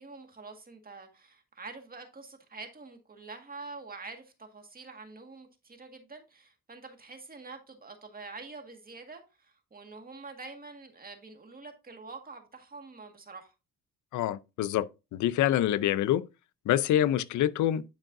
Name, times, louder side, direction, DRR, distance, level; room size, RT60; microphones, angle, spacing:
voice 1, 0.0-13.5, right 3 dB, 30° right, 1.7 m, -46 dB
voice 2, 14.1-16.2 16.7-17.8, left 12 dB, 75° left, 0.6 m, -26 dB
10.5 x 4.7 x 2.6 m
cardioid pair, 90°, 30 cm